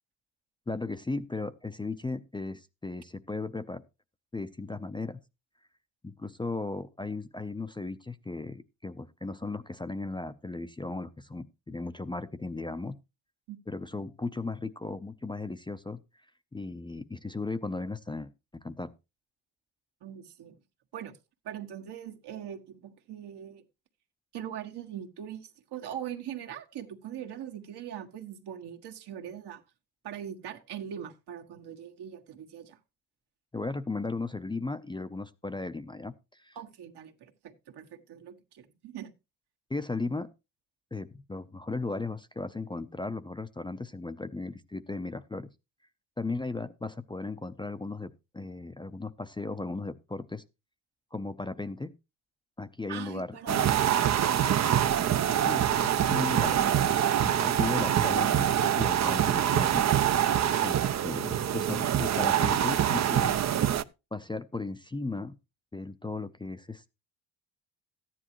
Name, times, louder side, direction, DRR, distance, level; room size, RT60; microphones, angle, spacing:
voice 1, 0.7-3.8 4.3-5.2 6.0-13.0 13.7-16.0 16.5-18.9 33.5-36.6 39.7-40.3 40.9-45.5 46.2-50.4 51.1-51.9 52.6-53.8 55.5-60.1 60.6-63.4 64.1-65.3 65.7-66.9, left 3 dB, 10° left, 0.6 m, -36 dB
voice 2, 20.0-20.5 20.9-21.2 21.4-23.6 24.3-29.6 30.0-32.8 36.5-39.1 52.9-53.8, right 10 dB, 70° right, 1.8 m, -41 dB
sound 1, 53.5-63.8, right 10 dB, 40° right, 0.6 m, -25 dB
13.5 x 10.0 x 3.0 m
cardioid pair, 100°, 42 cm